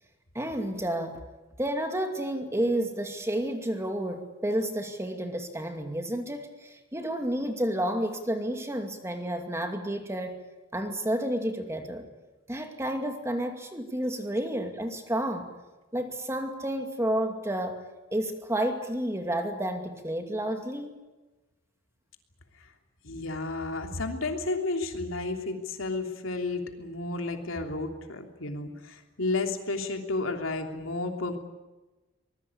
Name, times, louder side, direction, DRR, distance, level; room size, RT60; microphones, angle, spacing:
voice 1, 0.3-1.2 1.6-10.4 10.7-12.1 12.5-15.5 15.9-17.8 18.1-20.9, right 1 dB, 15° right, 5 dB, 2.4 m, -30 dB
voice 2, 23.0-31.4, left 3 dB, 80° left, 4 dB, 3.1 m, -32 dB
24.0 x 21.0 x 8.6 m, 1.1 s
head